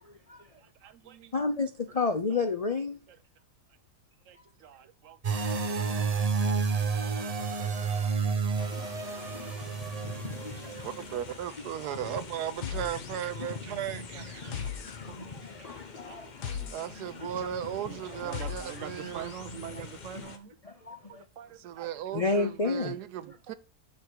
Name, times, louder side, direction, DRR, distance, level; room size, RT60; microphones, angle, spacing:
voice 1, 0.0-0.4 1.3-3.0 6.4-6.5 9.2-9.5 10.4-10.9 13.4-13.5 14.8-15.0 15.4-16.6 17.0-17.1 20.6-21.2 22.1-22.9, left 4 dB, 60° left, 0.3 m, -31 dB
voice 2, 0.5-1.4 2.3-2.4 4.3-5.6 6.8-8.1 8.5-8.7 9.4-9.5 10.0-10.1 10.5-10.9 11.5-12.0 14.1-14.2 14.5-15.8 16.1-16.9 17.2-17.3 17.9-20.5 21.0-21.9 22.3-22.4 22.9-23.4, right 9 dB, 60° right, 1.0 m, -47 dB
sound 1, 5.2-11.2, right 5 dB, 40° right, 0.5 m, -30 dB
sound 2, 8.6-20.4, left 4 dB, 40° left, 0.7 m, -44 dB
voice 3, 10.8-14.7 16.7-19.3 21.5-23.5, right 10 dB, 80° right, 1.2 m, -36 dB
sound 3, 12.6-13.5 13.8-19.8, left 8 dB, 90° left, 1.6 m, -41 dB
6.9 x 4.7 x 4.5 m
omnidirectional pair, 1.7 m